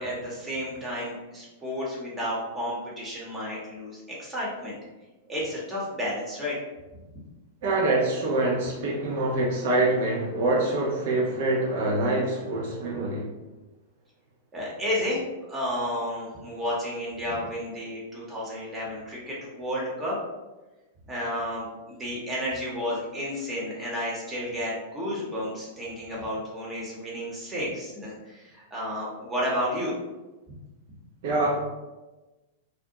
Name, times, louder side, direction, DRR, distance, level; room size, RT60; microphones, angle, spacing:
voice 1, 0.0-4.8 5.3-6.6 14.5-15.2 15.5-20.2 21.1-30.0, equal, 20° right, -5 dB, 0.8 m, -32 dB
voice 2, 7.6-13.3 31.2-31.6, right 2 dB, 55° right, -3 dB, 0.5 m, -25 dB
2.4 x 2.0 x 2.8 m, 1.1 s
hypercardioid pair, 100°, 0 cm